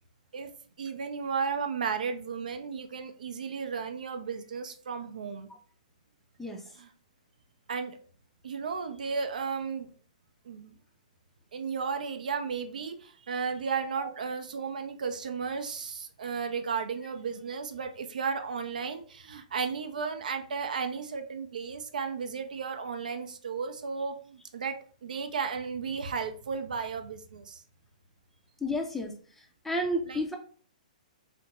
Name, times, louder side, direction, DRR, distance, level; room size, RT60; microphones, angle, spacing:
voice 1, 0.8-5.5 6.8-6.9 7.7-8.0 8.4-9.9 10.5-10.7 11.5-24.7 25.0-27.6 30.1-30.2, right 5 dB, 75° right, 6 dB, 0.4 m, -34 dB
voice 2, 28.6-29.2 29.6-30.4, equal, 5° left, 2 dB, 0.4 m, -31 dB
2.5 x 2.1 x 2.9 m, 0.43 s
hypercardioid pair, 130°, 4 cm